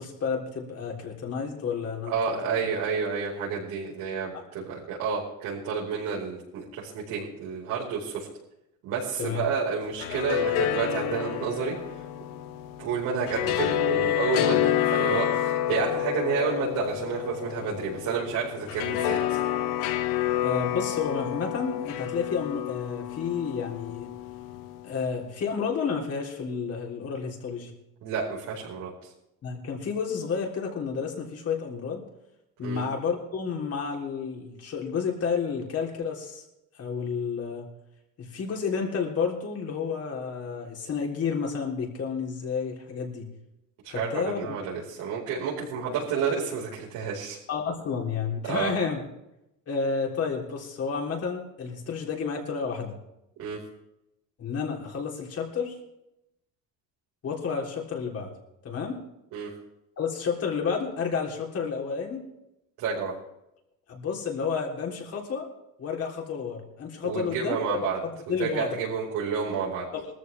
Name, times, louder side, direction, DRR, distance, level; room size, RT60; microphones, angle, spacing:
voice 1, 0.0-2.1 2.4-2.6 9.2-9.4 20.4-24.1 24.8-27.7 29.4-32.0 32.6-36.4 36.8-37.7 38.2-43.3 43.9-44.6 47.5-49.0 49.7-53.0 54.4-55.8 57.2-58.3 58.6-59.0 60.0-62.2 63.9-65.5 65.8-68.8 69.9-70.1, left 6 dB, 45° left, 0 dB, 3.6 m, -31 dB
voice 2, 2.1-8.3 8.8-11.8 12.8-19.4 28.0-28.9 32.6-32.8 43.8-47.4 48.4-48.7 53.4-53.6 59.3-59.5 62.8-63.1 67.0-68.0 68.4-69.8, right 6 dB, 80° right, -7 dB, 5.1 m, -30 dB
sound 1, 9.8-25.0, left 11 dB, 80° left, 1.1 m, -29 dB
20.0 x 14.0 x 3.5 m, 0.86 s
cardioid pair, 115°, 32 cm